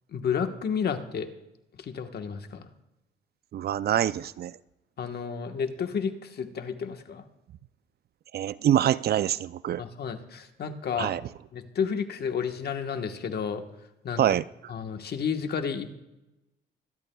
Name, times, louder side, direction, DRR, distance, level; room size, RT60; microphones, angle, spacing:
voice 1, 0.1-1.3 1.8-2.7 5.0-7.2 9.8-11.1 11.5-13.6 14.0-14.2 14.7-15.9, left 6 dB, 55° left, 7 dB, 1.3 m, -31 dB
voice 2, 3.5-4.6 8.3-9.8 11.0-11.2 14.2-14.4, right 11 dB, 55° right, 17 dB, 0.4 m, -25 dB
24.5 x 12.0 x 2.3 m, 0.93 s
cardioid pair, 90°, 20 cm